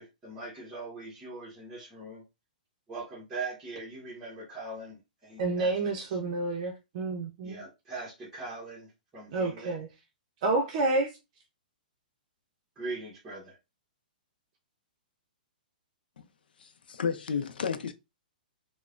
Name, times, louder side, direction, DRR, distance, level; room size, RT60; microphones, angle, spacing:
voice 1, 0.0-2.2 2.9-6.0 7.4-9.8 12.8-13.6, right 3 dB, 10° right, 0.8 m, -41 dB
voice 2, 5.4-7.6 9.3-9.9 10.4-11.1, right 2 dB, 45° right, 0.6 m, -29 dB
voice 3, 16.6-17.9, left 6 dB, 90° left, 0.5 m, -32 dB
3.0 x 2.1 x 2.4 m
hypercardioid pair, 155°, 5 cm